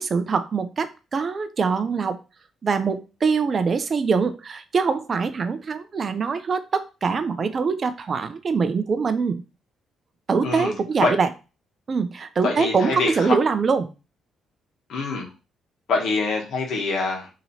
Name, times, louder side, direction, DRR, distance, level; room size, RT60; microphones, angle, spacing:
voice 1, 0.0-2.2 2.6-9.4 10.3-11.3 11.9-13.9, right 5 dB, 45° right, 10 dB, 0.5 m, -23 dB
voice 2, 12.4-13.3 14.9-15.3 15.9-17.3, left 3 dB, 70° left, 0 dB, 1.2 m, -25 dB
2.9 x 2.9 x 4.0 m, 0.31 s
cardioid pair, 90°, 0 cm